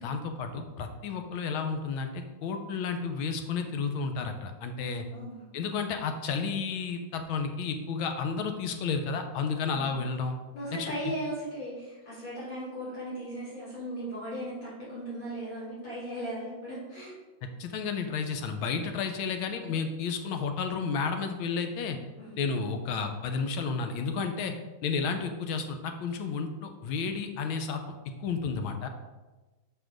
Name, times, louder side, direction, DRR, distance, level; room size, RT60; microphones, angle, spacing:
voice 1, 0.0-5.0 5.5-10.4 10.8-10.9 17.6-22.0 22.4-24.5 24.8-27.8 28.2-28.9, left 5 dB, 85° left, 6 dB, 1.6 m, -32 dB
voice 2, 4.8-5.4 10.5-17.1 22.2-22.4, right 1 dB, 65° left, -10 dB, 3.3 m, -37 dB
6.1 x 4.9 x 5.1 m, 1.2 s
omnidirectional pair, 2.2 m